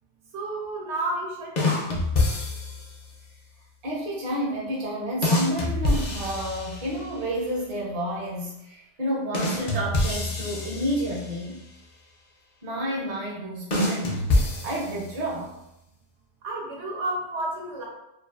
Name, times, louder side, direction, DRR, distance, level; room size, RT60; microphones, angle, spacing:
voice 1, 0.3-2.0 16.4-17.8, right 2 dB, 90° right, -2 dB, 1.0 m, -31 dB
sound 1, 1.6-3.0 5.2-7.2 9.3-11.5 13.7-15.3, left 2 dB, 55° left, 0.5 m, -26 dB
voice 2, 3.8-11.6 12.6-15.5, equal, 40° right, -4 dB, 0.6 m, -30 dB
2.5 x 2.3 x 2.3 m, 0.85 s
omnidirectional pair, 1.2 m